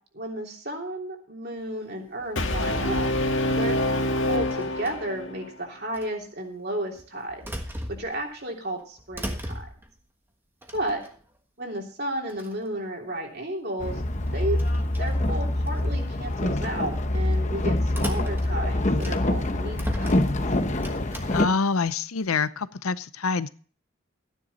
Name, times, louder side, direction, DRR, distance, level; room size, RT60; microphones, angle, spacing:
voice 1, 0.1-3.1 3.4-3.8 4.3-7.5 7.9-9.7 10.7-11.0 11.6-14.6 15.0-20.3, right 1 dB, 45° right, 1 dB, 3.1 m, -33 dB
sound 1, 2.2-3.2 4.5-5.2 5.9-6.1 7.0-8.4 8.8-10.0 10.6-11.4 12.0-12.1 12.3-12.7 14.2-15.8 16.3-16.6 17.9-19.4 19.7-21.2, equal, 10° right, 1.3 m, -38 dB
Brass instrument, 2.4-5.4, left 1 dB, 60° left, 1.9 m, -26 dB
Boat Water vehicle, 13.8-21.5, left 1 dB, 35° left, 0.9 m, -25 dB
voice 2, 21.3-23.5, left 4 dB, 80° left, 15 dB, 0.7 m, -26 dB
14.5 x 10.0 x 4.2 m, 0.42 s
head